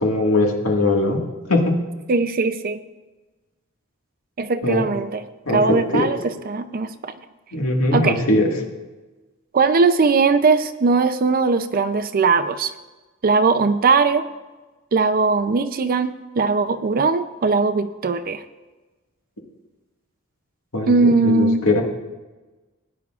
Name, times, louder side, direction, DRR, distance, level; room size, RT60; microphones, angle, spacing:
voice 1, 0.0-1.2 1.5-1.8 4.6-4.8 5.5-5.6 5.9-6.0 7.5-8.5 20.7-21.8, left 2 dB, 80° left, 0 dB, 1.8 m, -20 dB
voice 2, 2.1-2.8 4.4-5.3 5.5-7.1 7.9-8.2 9.5-12.7 13.2-14.2 14.9-18.4 20.9-21.7, right 4 dB, 45° right, 10 dB, 0.5 m, -19 dB
18.5 x 9.5 x 2.4 m, 1.2 s
head